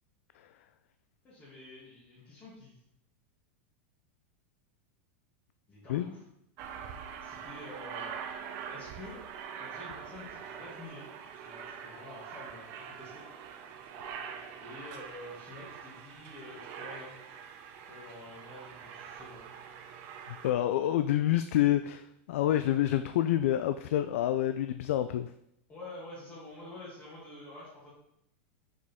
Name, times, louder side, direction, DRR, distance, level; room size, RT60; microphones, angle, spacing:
voice 1, 1.2-2.8 5.7-6.2 7.2-8.2 8.7-9.2 9.6-11.1 11.3-13.2 14.6-17.1 17.9-19.4 25.7-27.9, left 2 dB, 20° left, -9 dB, 2.1 m, -48 dB
Aircraft, 6.6-20.5, right 7 dB, 40° right, 0.7 m, -44 dB
voice 2, 20.3-25.3, left 12 dB, 75° left, 10 dB, 0.4 m, -28 dB
6.3 x 5.1 x 3.6 m, 0.77 s
supercardioid pair, 160°, 7 cm